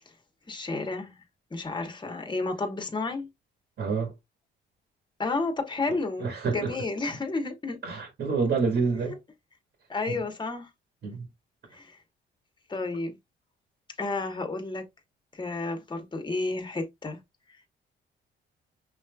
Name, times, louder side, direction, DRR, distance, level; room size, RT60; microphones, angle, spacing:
voice 1, 0.5-1.2 1.5-3.3 5.2-7.8 9.9-10.7 11.7-12.0 12.7-13.2 14.0-14.9 15.3-17.2, left 3 dB, 25° left, 1.2 m, -31 dB
voice 2, 3.8-4.1 6.2-6.7 7.8-9.2 10.1-10.2 11.0-11.3, right 4 dB, 60° right, 1.8 m, -27 dB
5.6 x 3.1 x 2.3 m
cardioid pair, 90°, 20 cm